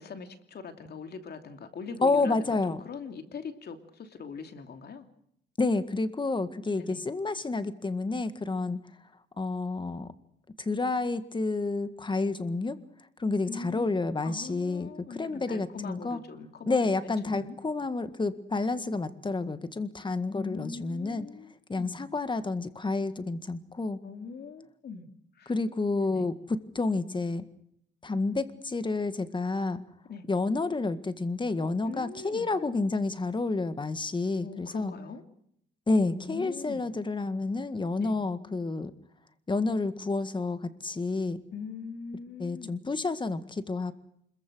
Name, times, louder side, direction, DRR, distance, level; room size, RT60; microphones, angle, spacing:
voice 1, 0.0-5.1 6.8-7.0 13.5-13.9 14.2-16.9 17.2-17.6 20.3-22.0 24.0-25.1 25.3-25.5 26.1-26.3 30.1-30.3 31.8-32.5 34.4-35.2 35.9-36.9 38.0-38.1 41.5-42.8, left 5 dB, 55° left, 7 dB, 2.8 m, -42 dB
voice 2, 2.0-2.8 5.6-8.8 9.4-10.1 10.6-12.8 13.2-14.9 15.1-16.2 16.7-21.3 21.7-24.0 25.5-27.4 28.0-29.8 30.3-34.9 35.9-38.9 39.5-41.4 42.4-43.9, left 3 dB, 25° left, 12 dB, 1.9 m, -29 dB
26.0 x 22.5 x 6.4 m, 0.71 s
cardioid pair, 90°, 20 cm